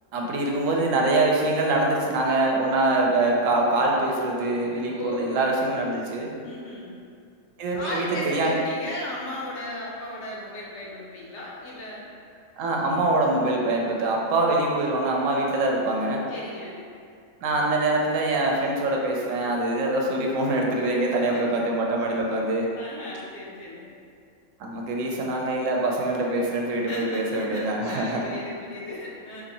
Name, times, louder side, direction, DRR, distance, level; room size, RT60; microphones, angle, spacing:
voice 1, 0.1-6.3 7.6-8.6 12.6-16.3 17.4-22.7 24.6-28.2, right 2 dB, 80° right, -1 dB, 0.9 m, -24 dB
voice 2, 4.9-5.6 6.4-6.9 7.7-12.1 16.3-16.8 20.9-21.4 22.8-23.9 26.7-29.4, left 1 dB, 65° left, -5 dB, 1.0 m, -36 dB
2.7 x 2.6 x 4.0 m, 2.3 s
omnidirectional pair, 1.3 m